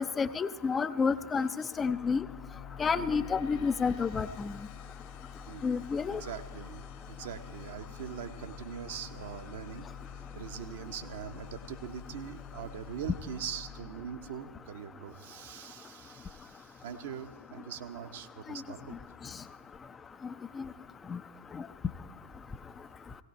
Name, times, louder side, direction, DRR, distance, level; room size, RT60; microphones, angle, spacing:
voice 1, 0.0-1.5 1.8-2.3 2.8-4.5 5.6-6.2 20.6-20.7 21.1-21.2 21.6-21.7, left 5 dB, 20° left, 11 dB, 0.5 m, -29 dB
sound 1, 1.7-14.8, left 7 dB, 45° left, 1.1 m, -47 dB
voice 2, 2.9-3.4 5.5-9.9 10.3-18.9, right 8 dB, 55° right, 7 dB, 1.0 m, -42 dB
18.0 x 17.5 x 4.3 m, 1.2 s
figure-of-eight pair, 90°, 0 cm